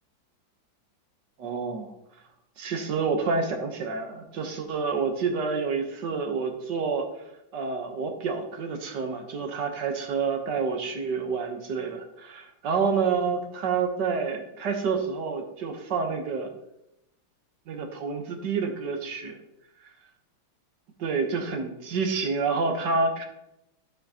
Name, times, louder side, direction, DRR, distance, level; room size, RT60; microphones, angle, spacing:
voice 1, 1.4-1.9 2.6-7.1 7.5-16.5 17.7-19.4 21.0-23.2, right 5 dB, 60° right, 4 dB, 1.7 m, -28 dB
12.0 x 7.7 x 2.9 m, 0.86 s
omnidirectional pair, 2.3 m